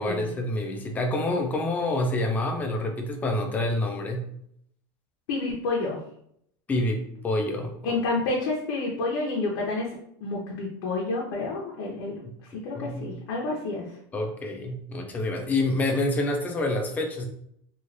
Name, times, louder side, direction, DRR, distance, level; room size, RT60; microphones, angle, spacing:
voice 1, 0.0-4.3 6.7-8.0 12.8-13.1 14.1-17.3, left 2 dB, 15° left, 3 dB, 0.3 m, -27 dB
voice 2, 5.3-6.0 7.8-12.2 12.6-13.9, left 3 dB, 85° left, -3 dB, 0.7 m, -29 dB
3.1 x 2.4 x 2.6 m, 0.70 s
cardioid pair, 165°, 12 cm